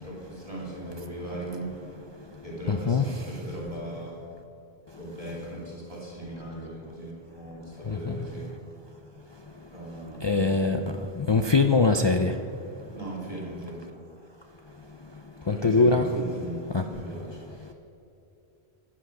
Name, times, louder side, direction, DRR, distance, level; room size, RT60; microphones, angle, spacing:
voice 1, 0.0-1.7 2.4-4.2 5.0-8.5 9.7-10.9 12.9-13.9 15.4-17.7, right 1 dB, 35° right, -5 dB, 2.7 m, -38 dB
voice 2, 2.7-3.0 8.1-8.2 10.2-10.8 11.2-12.3 15.5-16.0 16.7-16.8, left 4 dB, 40° left, 5 dB, 0.4 m, -22 dB
14.5 x 8.8 x 5.9 m, 2.9 s
omnidirectional pair, 1.1 m